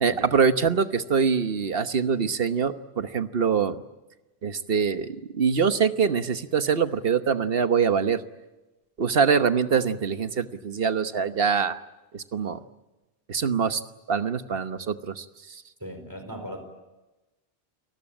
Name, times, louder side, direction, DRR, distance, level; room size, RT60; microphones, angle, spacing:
voice 1, 0.0-3.8 4.4-8.2 9.0-11.8 12.1-12.6 13.3-13.8 14.1-15.6, right 6 dB, 70° right, 10 dB, 1.3 m, -24 dB
voice 2, 15.8-16.6, equal, 20° right, 6 dB, 4.8 m, -38 dB
29.0 x 20.0 x 8.9 m, 1.1 s
omnidirectional pair, 1.0 m